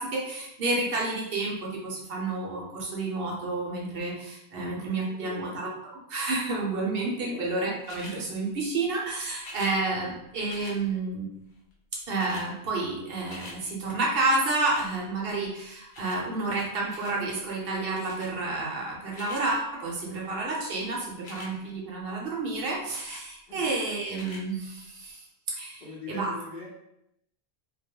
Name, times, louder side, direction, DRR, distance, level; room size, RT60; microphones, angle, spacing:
voice 1, 0.0-5.7 6.1-11.3 12.1-25.2 25.5-25.8 26.1-26.3, right 3 dB, 65° right, -2 dB, 0.7 m, -30 dB
voice 2, 4.5-5.7 7.1-7.4 23.5-23.7 25.8-26.7, left 2 dB, 55° left, -5 dB, 0.7 m, -43 dB
sound 1, 7.8-8.2 9.4-9.7 10.5-10.8 11.7-11.8 12.0-12.5 12.9-13.6 14.6-14.9 15.9-16.2 16.9-17.2 18.0-18.3 18.9-19.4 21.1-21.5 22.9-23.3 24.1-24.4 25.1-25.2, left 2 dB, 75° left, 0.9 m, -44 dB
2.2 x 2.0 x 2.8 m, 0.81 s
omnidirectional pair, 1.1 m